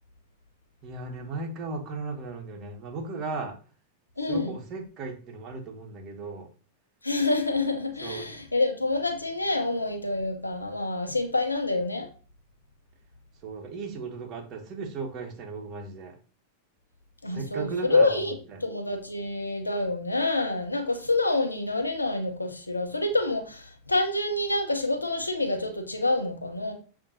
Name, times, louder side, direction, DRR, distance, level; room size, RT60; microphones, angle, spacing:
voice 1, 0.8-3.5 4.3-6.5 8.0-8.4 13.4-16.2 17.3-18.6, right 4 dB, 35° right, 1.0 m, -36 dB
voice 2, 4.2-4.5 7.0-12.1 17.2-26.7, left 2 dB, 80° left, 0.8 m, -27 dB
7.0 x 2.7 x 2.7 m
figure-of-eight pair, 90°, 0 cm